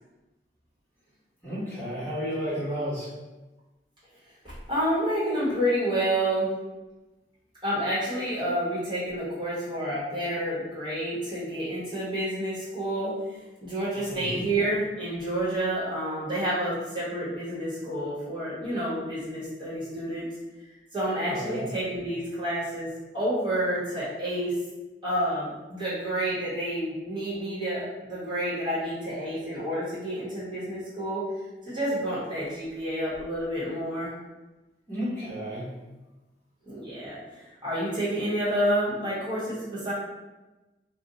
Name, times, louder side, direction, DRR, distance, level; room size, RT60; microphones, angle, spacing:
voice 1, 1.4-3.1 14.1-14.5 21.3-21.7 34.9-35.7, equal, 10° left, -12 dB, 1.1 m, -32 dB
voice 2, 4.4-6.5 7.6-13.1 13.6-20.3 20.9-24.5 25.0-31.2 31.6-34.1 36.6-39.9, right 1 dB, 25° right, -10 dB, 1.2 m, -29 dB
2.6 x 2.1 x 3.9 m, 1.1 s
head